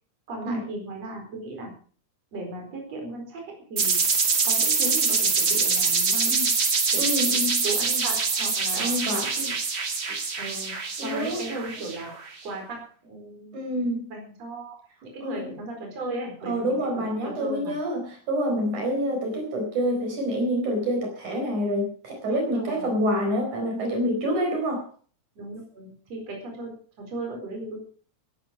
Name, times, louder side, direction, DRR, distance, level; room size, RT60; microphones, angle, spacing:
voice 1, 0.3-1.7 2.3-4.0 4.4-6.5 6.9-7.1 7.6-8.9 9.2-9.5 10.4-12.1 12.4-13.6 14.1-14.8 15.0-16.8 17.2-17.8 22.3-22.9 25.4-26.7 27.0-27.8, right 2 dB, 55° right, 2 dB, 5.6 m, -36 dB
sound 1, 3.8-12.3, right 4 dB, 35° right, 2.5 m, -24 dB
voice 2, 7.0-7.6 8.7-9.3 11.0-11.4 13.5-14.1 15.2-15.5 16.5-24.8, equal, 75° right, 2 dB, 5.8 m, -27 dB
17.5 x 11.5 x 5.1 m, 0.44 s
omnidirectional pair, 3.5 m